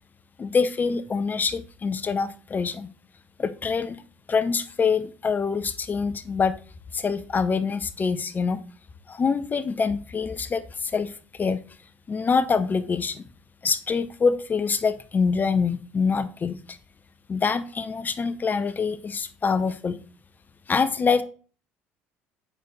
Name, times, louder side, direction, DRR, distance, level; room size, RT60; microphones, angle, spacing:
voice 1, 0.4-2.9 3.4-4.0 4.3-6.5 6.9-8.6 9.1-11.6 12.1-13.2 13.6-16.8 17.3-20.0 20.7-21.2, left 5 dB, 30° left, 13 dB, 0.7 m, -25 dB
9.1 x 6.0 x 3.3 m, 0.38 s
supercardioid pair, 75°, 6 cm